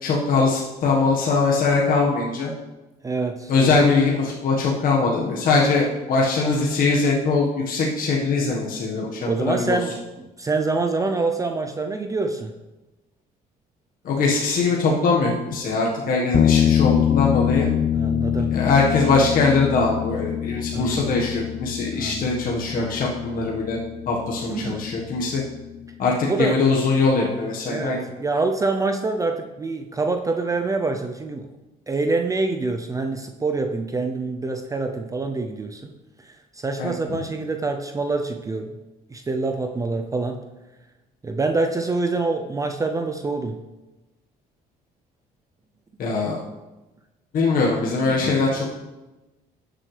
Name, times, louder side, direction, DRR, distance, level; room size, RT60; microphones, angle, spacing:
voice 1, 0.0-2.5 3.5-9.8 14.0-17.7 18.5-23.8 24.1-25.4 26.0-28.0 36.8-37.2 46.0-46.4 47.3-48.7, left 4 dB, 55° left, -3 dB, 1.5 m, -21 dB
voice 2, 3.0-3.7 9.2-12.5 17.9-18.6 20.7-21.1 22.0-22.3 24.4-24.9 26.3-26.6 27.7-31.5 31.9-35.9 36.3-38.7 39.1-40.4 41.2-43.6 48.1-48.2, right 3 dB, 20° right, 5 dB, 0.6 m, -26 dB
sound 1, 16.3-25.8, left 10 dB, 40° left, 0.4 m, -24 dB
12.5 x 7.6 x 3.3 m, 1.1 s
cardioid pair, 110°, 17 cm